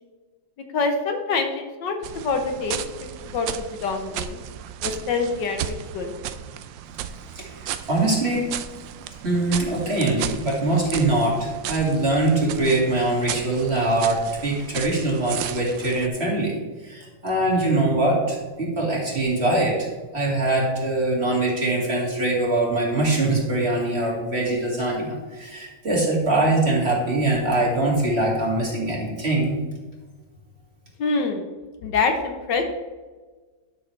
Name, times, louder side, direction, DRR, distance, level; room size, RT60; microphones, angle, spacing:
voice 1, 0.7-3.5 3.8-4.4 4.8-6.1 31.0-31.5 31.8-32.6, left 4 dB, 70° left, 4 dB, 1.5 m, -25 dB
sound 1, 2.0-16.1, right 10 dB, 75° right, 1.2 m, -35 dB
voice 2, 7.4-8.5 9.2-16.5 16.8-19.9 20.1-29.6, right 2 dB, 35° right, -3 dB, 2.1 m, -23 dB
12.0 x 6.1 x 3.3 m, 1.3 s
omnidirectional pair, 2.1 m